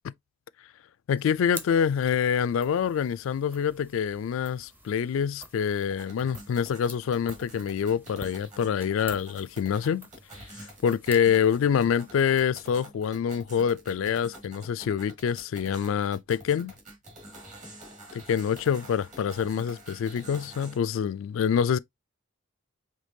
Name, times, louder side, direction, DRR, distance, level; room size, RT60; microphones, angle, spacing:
voice 1, 1.1-10.1 10.6-16.7 18.1-21.8, left 7 dB, 70° left, 0.3 m, -26 dB
sound 1, 1.2-12.8, right 1 dB, 10° right, 0.6 m, -48 dB
sound 2, 5.9-20.8, right 1 dB, 35° right, 1.9 m, -47 dB
5.1 x 3.3 x 2.7 m
head